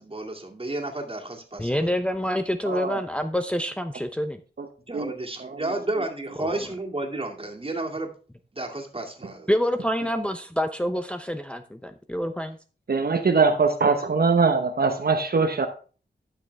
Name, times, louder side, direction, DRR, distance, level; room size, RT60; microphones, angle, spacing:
voice 1, 0.0-1.9 4.9-8.1 8.5-9.5, right 2 dB, 30° right, 2.3 m, -32 dB
voice 2, 1.6-4.4 6.4-6.5 9.5-12.6, equal, 5° left, 0.7 m, -27 dB
voice 3, 2.7-3.0 4.6-4.7 4.9-5.1 5.4-5.6 12.9-15.7, right 4 dB, 60° right, 0.9 m, -22 dB
12.5 x 6.3 x 3.4 m
wide cardioid pair, 75°, 18 cm